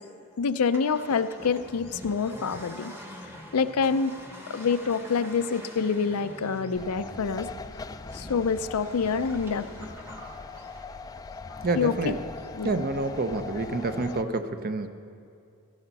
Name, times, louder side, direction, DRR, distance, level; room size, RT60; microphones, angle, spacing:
voice 1, 0.4-2.9 3.5-4.2 4.5-7.5 8.1-9.7 11.7-12.2 12.5-12.8, left 5 dB, 90° left, 11 dB, 0.5 m, -26 dB
Accelerating revving vroom, 0.6-14.1, equal, 10° right, 1.0 m, -46 dB
sound 1, 6.7-14.2, left 4 dB, 15° left, 0.3 m, -41 dB
voice 2, 11.6-12.2 12.6-14.9, right 2 dB, 45° right, 9 dB, 0.7 m, -28 dB
17.0 x 14.0 x 4.1 m, 2.5 s
head